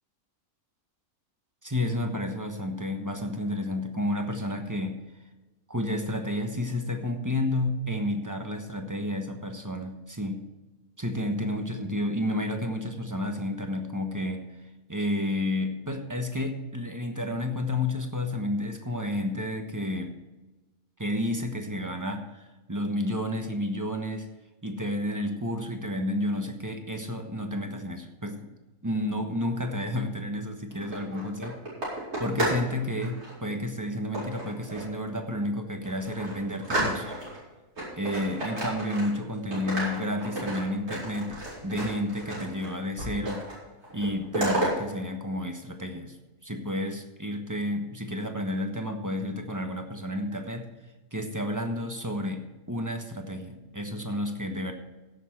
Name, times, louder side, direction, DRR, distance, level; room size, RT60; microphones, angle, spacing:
voice 1, 1.6-5.0 5.7-10.4 11.0-14.4 14.9-20.1 21.0-24.2 24.6-28.5 28.8-31.6 32.2-37.1 38.0-41.3 41.6-43.4 43.9-46.2 46.4-50.7 51.1-54.7, left 1 dB, 15° right, 4 dB, 1.1 m, -31 dB
sound 1, 30.7-32.7 33.0-33.3 34.1-35.0 35.4-35.5 35.8-37.4 37.8-39.3 39.5-42.7 43.0-43.6 43.8-44.7, right 1 dB, 75° right, 5.2 m, -32 dB
16.0 x 6.8 x 4.7 m, 1.1 s
omnidirectional pair, 1.6 m